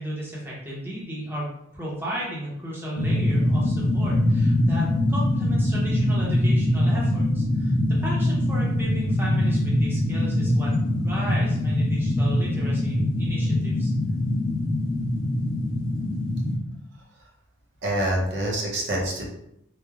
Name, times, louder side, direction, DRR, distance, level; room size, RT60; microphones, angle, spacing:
voice 1, 0.0-7.7 8.0-13.9, right 1 dB, 10° right, -6 dB, 0.6 m, -34 dB
sound 1, 3.0-16.6, left 1 dB, 75° left, 0.6 m, -23 dB
voice 2, 17.8-19.3, right 1 dB, 55° right, -2 dB, 0.6 m, -26 dB
3.2 x 2.0 x 2.3 m, 0.77 s
head